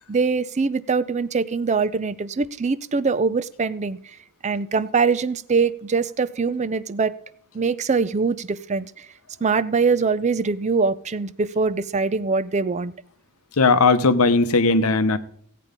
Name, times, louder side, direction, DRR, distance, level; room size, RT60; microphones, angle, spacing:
voice 1, 0.1-4.2 4.4-7.1 7.5-9.1 9.4-12.9, right 4 dB, 30° right, 0.5 m, -23 dB
voice 2, 13.6-15.2, left 3 dB, 75° left, 0.9 m, -17 dB
16.0 x 8.4 x 5.1 m
head